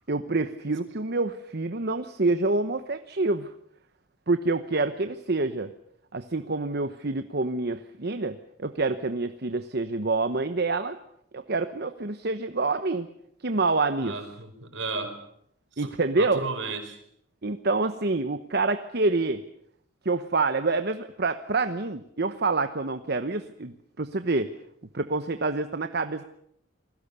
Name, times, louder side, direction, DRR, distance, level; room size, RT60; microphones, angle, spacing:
voice 1, 0.1-3.5 4.3-5.7 6.1-11.0 11.3-13.1 13.4-14.2 15.8-16.4 17.4-19.4 20.0-24.5 24.9-26.2, right 3 dB, 55° right, 9 dB, 1.0 m, -27 dB
voice 2, 14.0-15.2 15.8-15.9 16.2-17.0, right 3 dB, 70° right, 7 dB, 4.8 m, -34 dB
29.0 x 21.0 x 6.9 m, 0.71 s
head